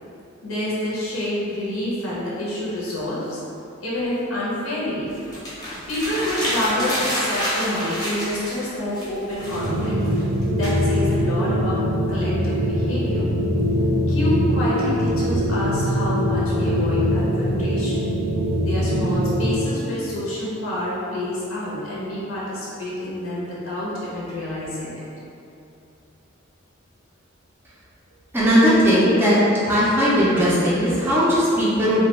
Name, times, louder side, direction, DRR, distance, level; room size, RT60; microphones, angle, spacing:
voice 1, 0.4-3.4 3.8-5.1 5.9-10.0 10.5-11.8 12.1-13.3 14.1-18.1 18.6-25.0, left 1 dB, 85° left, -7 dB, 0.6 m, -27 dB
sound 1, 5.1-8.7 8.9-11.2, equal, 20° left, 0.7 m, -28 dB
sound 2, 9.4-19.6, equal, 75° right, 0.6 m, -22 dB
voice 2, 28.3-29.4 29.7-32.1, equal, 10° right, -9 dB, 0.3 m, -18 dB
2.2 x 2.1 x 2.8 m, 2.8 s
head